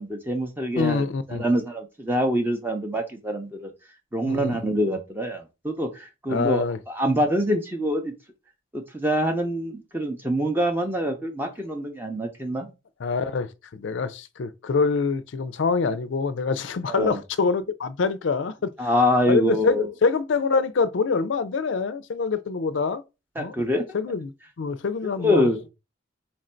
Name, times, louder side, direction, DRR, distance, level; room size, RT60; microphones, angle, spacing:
voice 1, 0.0-3.7 4.1-8.1 8.7-12.7 16.9-17.2 18.8-19.9 23.4-23.9 25.2-25.6, equal, 10° right, 0.6 m, -25 dB
voice 2, 0.8-1.4 4.3-4.6 6.3-6.8 13.0-18.7 19.3-23.0 23.4-23.5 23.9-24.3 24.6-25.5, left 4 dB, 70° left, 0.4 m, -25 dB
4.4 x 2.5 x 4.3 m
head